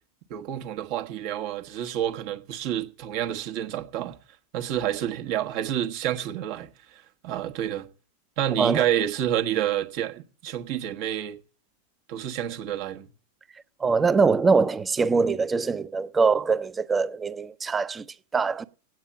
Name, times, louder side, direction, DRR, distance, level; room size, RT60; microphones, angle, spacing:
voice 1, 0.3-4.2 4.5-7.9 8.4-11.4 12.1-13.1, right 11 dB, 45° right, 1.3 m, -29 dB
voice 2, 13.8-18.0 18.3-18.6, right 4 dB, 15° right, 0.7 m, -23 dB
9.1 x 8.9 x 8.5 m
figure-of-eight pair, 90°, 0 cm